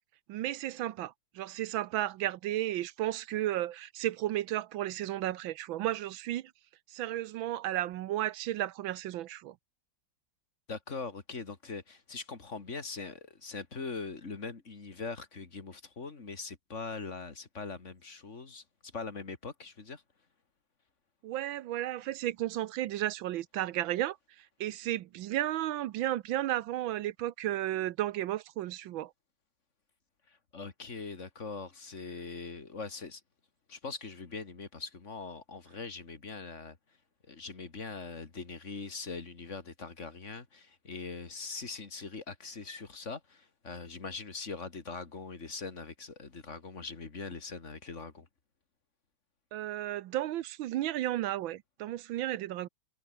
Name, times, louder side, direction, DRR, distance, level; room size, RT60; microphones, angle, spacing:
voice 1, 0.3-6.5 6.9-9.5 21.2-29.1 49.5-52.7, right 13 dB, 80° right, 1.5 m, -33 dB
voice 2, 10.7-20.0 30.3-33.2 33.7-36.8 37.3-48.3, left 4 dB, 35° left, 2.5 m, -42 dB
omnidirectional pair, 2.2 m